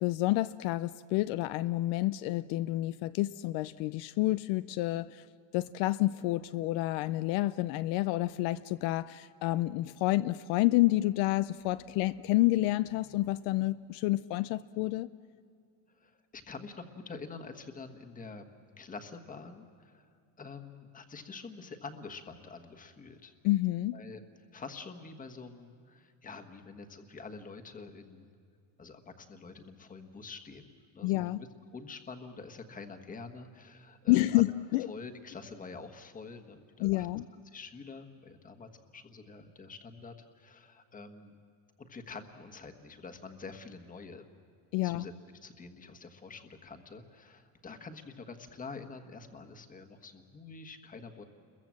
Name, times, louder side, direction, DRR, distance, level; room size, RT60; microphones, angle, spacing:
voice 1, 0.0-5.2 5.5-15.1 23.4-24.0 31.0-31.4 34.1-34.9 36.8-37.3 44.7-45.0, left 17 dB, 70° left, 14 dB, 0.6 m, -29 dB
voice 2, 16.0-18.4 18.8-20.1 20.4-23.3 23.9-24.2 24.5-28.3 28.8-31.5 31.7-34.5 34.9-37.1 37.4-41.4 41.8-44.3 44.8-45.1 45.4-51.2, left 4 dB, 20° left, 6 dB, 1.4 m, -47 dB
30.0 x 22.5 x 7.6 m, 2.4 s
cardioid pair, 160°, 45 cm